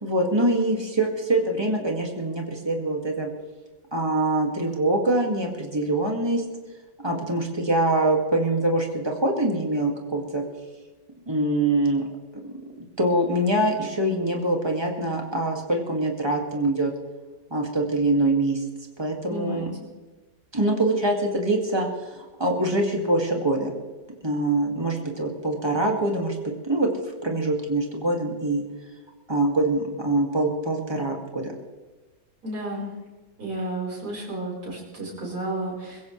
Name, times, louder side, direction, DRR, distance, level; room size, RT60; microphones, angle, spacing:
voice 1, 0.0-3.3 3.9-6.4 7.0-10.4 11.3-12.1 13.0-16.9 17.5-18.6 19.0-19.7 20.5-23.7 24.2-26.4 26.7-26.9 27.2-28.6 29.3-31.5, right 2 dB, 15° right, 1 dB, 2.1 m, -24 dB
voice 2, 19.3-19.7 32.4-32.9 33.4-36.0, right 1 dB, 60° right, -4 dB, 5.1 m, -32 dB
22.5 x 15.5 x 3.3 m, 1.2 s
omnidirectional pair, 2.0 m